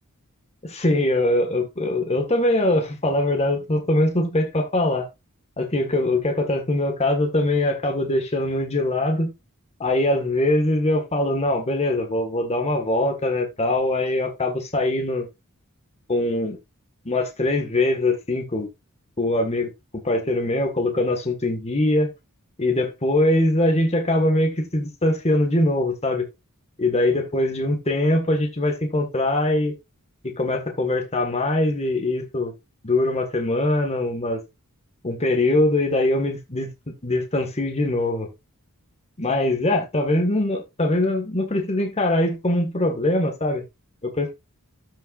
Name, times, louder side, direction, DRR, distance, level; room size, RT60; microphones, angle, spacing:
voice 1, 0.6-5.1 5.6-9.3 9.8-15.3 16.1-16.6 17.0-18.7 19.2-22.1 22.6-26.3 26.8-29.7 30.2-32.5 32.8-34.4 35.0-36.7 37.0-38.3 39.2-43.6 44.0-44.3, left 1 dB, 30° left, 1.6 m, -22 dB
13.0 x 5.6 x 2.5 m
head